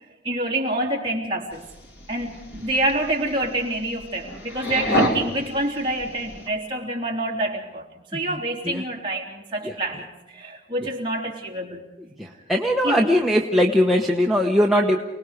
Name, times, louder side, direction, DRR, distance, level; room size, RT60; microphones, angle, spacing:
voice 1, 0.2-1.6 2.1-7.8 8.1-11.8 12.8-13.1, right 1 dB, 25° right, -1 dB, 3.3 m, -27 dB
sound 1, 1.5-6.5, equal, 65° left, 3.2 m, -29 dB
voice 2, 12.2-15.0, equal, ahead, -1 dB, 1.0 m, -20 dB
29.0 x 19.5 x 5.1 m, 1.0 s
head